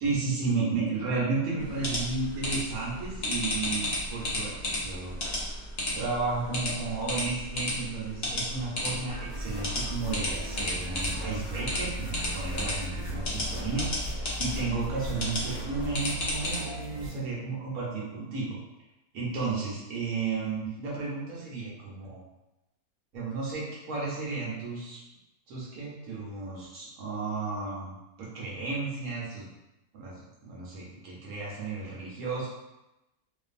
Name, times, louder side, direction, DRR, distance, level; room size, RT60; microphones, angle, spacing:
voice 1, 0.0-5.1 5.9-18.6 19.1-22.2 23.1-25.0 25.5-29.5 29.9-30.2 30.4-32.5, right 4 dB, 75° right, -5 dB, 1.1 m, -33 dB
sound 1, 1.6-16.6, left 1 dB, 60° left, 0.4 m, -34 dB
sound 2, 9.1-17.1, right 1 dB, 45° right, 0.7 m, -38 dB
2.5 x 2.5 x 2.4 m, 0.97 s
omnidirectional pair, 1.6 m